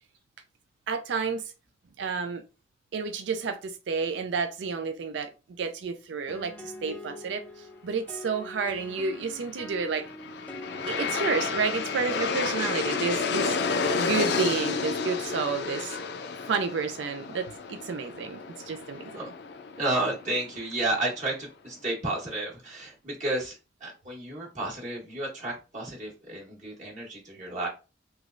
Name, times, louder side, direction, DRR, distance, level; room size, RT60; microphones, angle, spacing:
voice 1, 0.9-1.5 2.0-2.4 2.9-5.3 5.6-10.0 10.9-16.0 16.5-19.0, right 5 dB, 70° right, 0.4 m, -30 dB
sound 1, 6.3-15.9, left 1 dB, 10° left, 0.4 m, -45 dB
Aircraft, 9.8-20.8, left 5 dB, 60° left, 0.5 m, -31 dB
voice 2, 19.8-27.7, right 2 dB, 40° right, 1.0 m, -32 dB
3.3 x 3.0 x 2.4 m
head